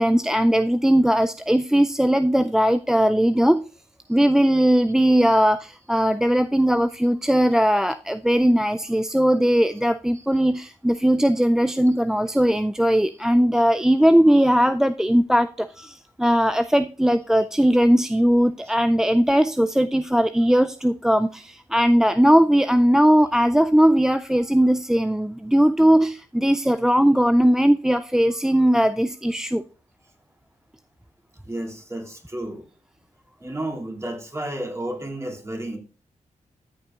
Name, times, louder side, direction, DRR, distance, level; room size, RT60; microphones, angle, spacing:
voice 1, 0.0-3.6 4.1-29.6, equal, 5° right, 0.3 m, -19 dB
voice 2, 31.5-32.6 33.4-35.8, right 1 dB, 20° right, 2.5 m, -32 dB
13.0 x 6.9 x 2.4 m
cardioid pair, 60°, 13 cm